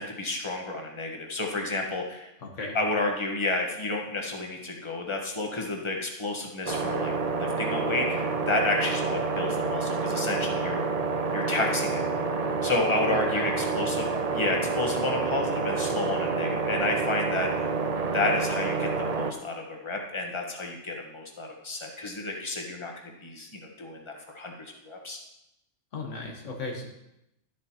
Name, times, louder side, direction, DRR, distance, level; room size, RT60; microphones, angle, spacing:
voice 1, 0.0-2.3 2.7-10.8 11.3-12.0 12.6-17.7 18.0-24.5 24.8-25.2, left 2 dB, 25° left, 1 dB, 1.3 m, -31 dB
voice 2, 2.4-2.8 13.1-13.5 25.9-26.9, left 3 dB, 85° left, 1 dB, 1.6 m, -36 dB
sound 1, 6.7-19.3, right 4 dB, 40° right, 0.7 m, -28 dB
12.0 x 7.6 x 2.9 m, 0.85 s
omnidirectional pair, 1.2 m